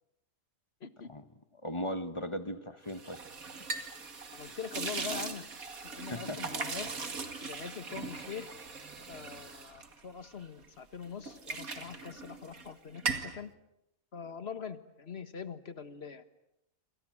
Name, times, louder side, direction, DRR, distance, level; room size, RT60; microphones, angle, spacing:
voice 1, 0.8-1.1 4.3-5.4 5.8-6.9 7.4-8.5 9.1-13.5 14.1-16.2, left 6 dB, 50° left, 12 dB, 1.7 m, -43 dB
voice 2, 1.6-3.2 4.5-4.6 6.0-6.4, equal, 20° left, 11 dB, 1.3 m, -37 dB
sound 1, 2.9-10.7 11.0-12.7 12.9-13.4, right 4 dB, 85° right, 2.6 m, -39 dB
28.5 x 26.5 x 7.7 m, 0.83 s
omnidirectional pair, 1.4 m